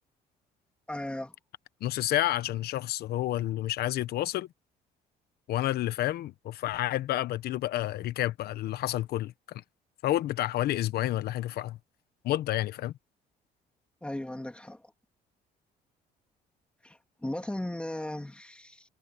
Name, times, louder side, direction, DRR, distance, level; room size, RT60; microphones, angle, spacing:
voice 1, 0.9-1.3 14.0-14.8 16.8-18.8, left 1 dB, 5° left, 2.8 m, -36 dB
voice 2, 1.8-4.5 5.5-9.6 10.0-11.8 12.2-12.9, left 14 dB, 70° left, 1.0 m, -30 dB
cardioid pair, 110°, 17 cm